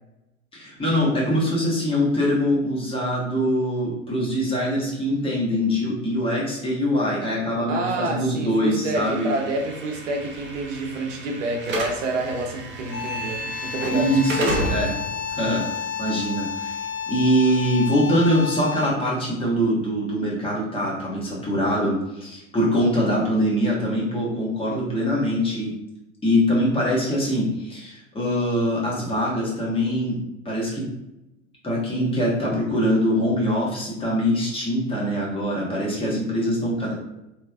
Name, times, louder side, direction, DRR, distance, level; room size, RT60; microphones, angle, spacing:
voice 1, 0.5-9.3 13.9-14.9 15.3-16.8 17.1-25.7 26.2-30.2 30.4-30.8 31.6-36.9, equal, 15° left, -5 dB, 1.3 m, -23 dB
voice 2, 7.7-14.1 14.4-14.9, right 2 dB, 70° right, 2 dB, 0.8 m, -28 dB
Slam / Alarm, 8.9-17.0, right 1 dB, 30° right, 0.7 m, -32 dB
sound 1, 12.9-19.1, left 6 dB, 30° left, 0.4 m, -31 dB
3.1 x 3.1 x 2.4 m, 0.92 s
hypercardioid pair, 90°, 38 cm